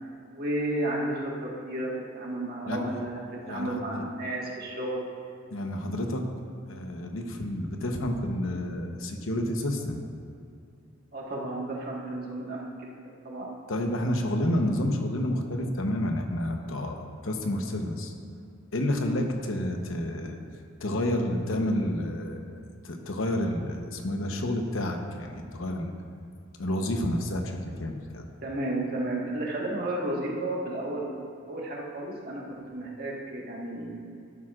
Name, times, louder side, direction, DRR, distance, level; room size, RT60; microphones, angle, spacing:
voice 1, 0.3-5.1 11.1-12.9 13.2-13.6 15.3-15.5 28.4-34.0, right 1 dB, 50° right, -3 dB, 1.6 m, -33 dB
voice 2, 3.4-4.0 5.5-6.3 6.7-10.0 13.7-18.1 18.7-20.4 20.8-22.6 22.8-25.9 26.6-28.2, left 1 dB, 85° left, 3 dB, 1.0 m, -30 dB
12.0 x 11.0 x 2.5 m, 2.5 s
head